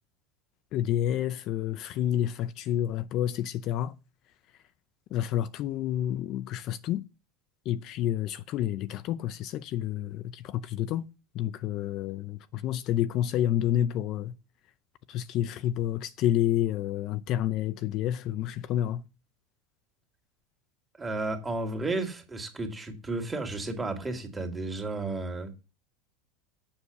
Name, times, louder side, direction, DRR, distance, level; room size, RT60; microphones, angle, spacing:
voice 1, 0.7-3.9 5.1-7.1 7.6-11.1 11.3-14.3 15.1-19.0, left 12 dB, 50° left, 0.5 m, -29 dB
voice 2, 21.0-25.5, right 2 dB, 15° right, 2.3 m, -33 dB
7.2 x 6.4 x 7.0 m
supercardioid pair, 115°, 0 cm